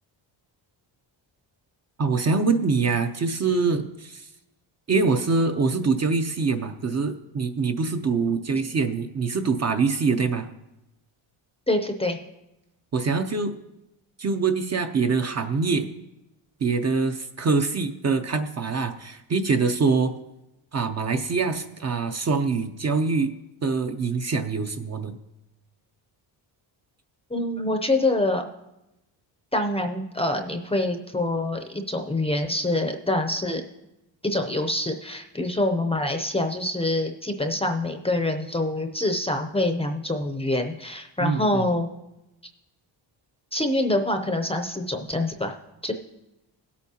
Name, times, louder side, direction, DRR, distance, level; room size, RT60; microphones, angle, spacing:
voice 1, 2.0-4.3 4.9-10.5 12.9-13.5 14.2-15.9 16.6-20.2 20.7-23.3 23.6-25.2 41.2-41.7, right 4 dB, 35° right, 7 dB, 0.6 m, -24 dB
voice 2, 11.7-12.2 27.3-28.5 29.5-33.6 34.2-41.9 43.5-45.6 45.8-45.9, left 1 dB, 15° left, 5 dB, 0.6 m, -25 dB
18.0 x 8.4 x 2.8 m, 0.93 s
cardioid pair, 140°, 47 cm